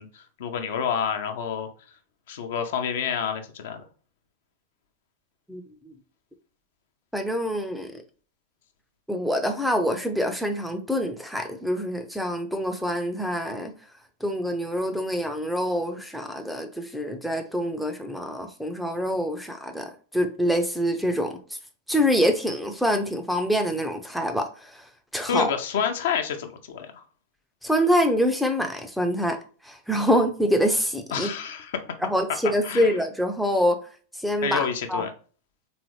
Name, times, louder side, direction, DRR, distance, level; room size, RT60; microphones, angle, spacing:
voice 1, 0.0-1.7 2.3-3.8 25.3-26.9 31.1-31.9 32.6-32.9 34.4-35.1, left 7 dB, 55° left, 0.6 m, -28 dB
voice 2, 5.5-5.9 7.1-7.9 9.1-13.7 14.2-21.6 21.9-25.5 27.6-29.4 29.6-31.3 32.0-33.8 34.2-35.1, equal, ahead, 0.5 m, -25 dB
3.7 x 3.1 x 3.1 m
figure-of-eight pair, 90°, 0 cm